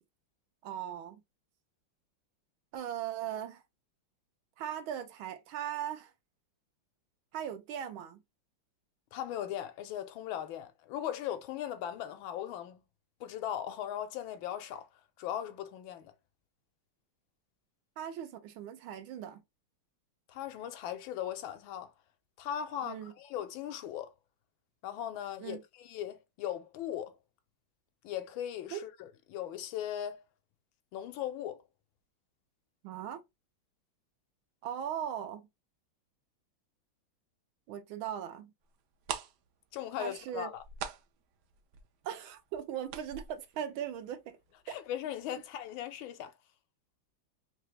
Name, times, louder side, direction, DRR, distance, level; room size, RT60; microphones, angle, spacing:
voice 1, 0.6-1.2 2.7-3.6 4.6-6.1 7.3-8.2 18.0-19.4 22.8-23.1 25.4-25.6 28.7-28.8 32.8-33.2 34.6-35.5 37.7-38.5 40.0-40.5 42.0-44.4, right 10 dB, 90° right, 1.5 m, -39 dB
voice 2, 9.1-12.8 13.2-14.9 15.2-16.1 20.3-21.9 22.4-24.1 24.8-27.1 28.0-30.2 30.9-31.6 39.7-40.6 44.7-46.3, left 10 dB, 85° left, 1.4 m, -38 dB
sound 1, 38.7-38.8 39.0-44.6 44.9-45.0 45.4-45.6 45.9-46.0, right 8 dB, 70° right, 1.0 m, -43 dB
3.8 x 2.8 x 3.1 m
omnidirectional pair, 2.2 m